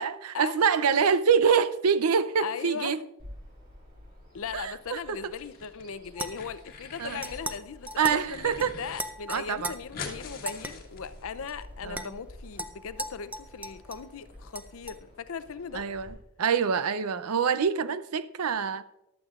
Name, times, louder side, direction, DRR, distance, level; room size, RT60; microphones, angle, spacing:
voice 1, 0.0-3.0 4.5-5.3 7.0-7.2 8.0-8.7 9.3-9.7 11.8-12.1 15.7-18.8, right 6 dB, 90° right, 0.6 m, -26 dB
voice 2, 2.4-3.0 4.3-15.9, left 6 dB, 65° left, 0.5 m, -38 dB
Bird vocalization bird call bird song, 3.2-16.1, left 1 dB, 45° right, 4.1 m, -50 dB
sound 1, 5.2-5.9 6.2-7.4 7.8-9.0 9.3-9.4 9.6-11.5, left 4 dB, 45° left, 1.4 m, -43 dB
sound 2, 6.2-6.6 7.2-7.6 7.9-8.2 8.6-8.7 9.0-9.7 10.5-10.7 11.5-11.6 11.9-12.1 12.6-14.1 14.5-15.0, right 1 dB, 5° right, 0.5 m, -37 dB
14.5 x 11.5 x 2.4 m
head